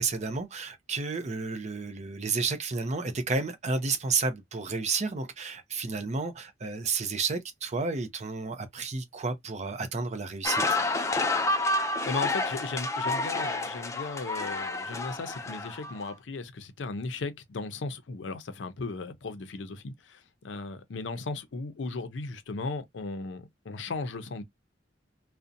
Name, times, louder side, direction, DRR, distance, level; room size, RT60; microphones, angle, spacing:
voice 1, 0.0-10.8, right 4 dB, 40° right, 0.5 m, -31 dB
sound 1, 10.4-16.1, left 2 dB, 15° left, 0.3 m, -29 dB
voice 2, 12.1-24.4, left 3 dB, 75° left, 0.5 m, -36 dB
2.6 x 2.1 x 2.5 m
head